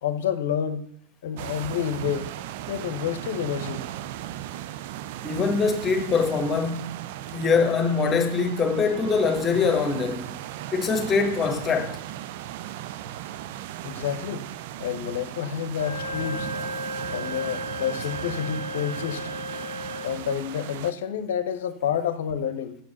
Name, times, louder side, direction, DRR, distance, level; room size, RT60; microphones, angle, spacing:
voice 1, 0.0-0.9 1.2-2.3 2.7-3.9 13.8-14.5 14.8-16.5 17.1-19.3 20.0-22.8, left 8 dB, 55° left, 0.9 m, -29 dB
sound 1, 1.4-20.9, right 12 dB, 50° right, 0.5 m, -37 dB
voice 2, 5.2-6.9 7.3-10.4 10.7-12.0, left 5 dB, 20° left, 1.4 m, -23 dB
Wind instrument woodwind instrument, 15.7-20.2, left 1 dB, 80° right, 1.0 m, -35 dB
8.4 x 7.4 x 7.1 m
figure-of-eight pair, 90°, 0 cm